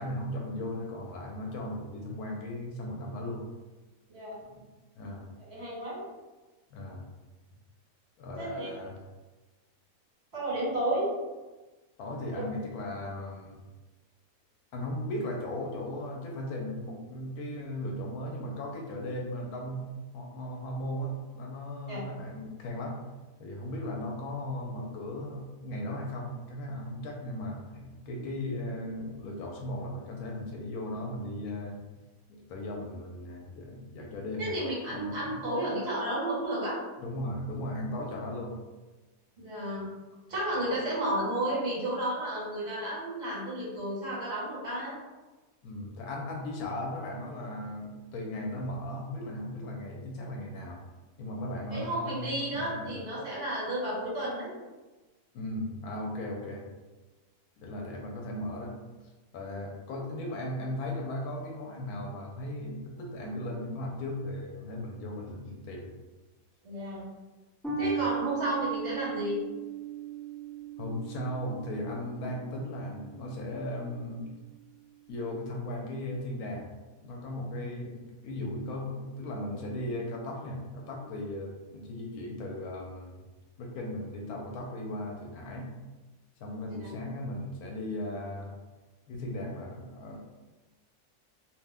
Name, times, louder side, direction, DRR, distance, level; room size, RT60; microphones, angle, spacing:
voice 1, 0.0-3.4 4.5-4.6 5.0-5.3 6.7-7.0 8.2-9.0 12.0-13.6 14.7-23.0 23.4-31.8 32.3-34.5 34.9-35.5 37.0-38.6 45.6-50.8 51.2-53.0 55.3-56.6 57.6-58.8 59.3-65.9 67.7-67.9 70.8-74.3 75.1-76.7 77.0-83.2 83.6-85.7 86.4-88.5 89.1-90.2, left 1 dB, 80° left, 0 dB, 1.1 m, -37 dB
voice 2, 5.4-6.0 8.4-8.7 10.3-11.1 12.3-12.4 21.9-22.0 34.4-36.8 39.4-39.9 40.3-44.9 51.7-54.5 66.6-67.0 67.8-69.4 86.6-86.7, right 1 dB, 45° right, -7 dB, 1.5 m, -32 dB
sound 1, 67.6-74.4, right 7 dB, ahead, 0.6 m, -38 dB
2.7 x 2.1 x 3.4 m, 1.2 s
omnidirectional pair, 1.6 m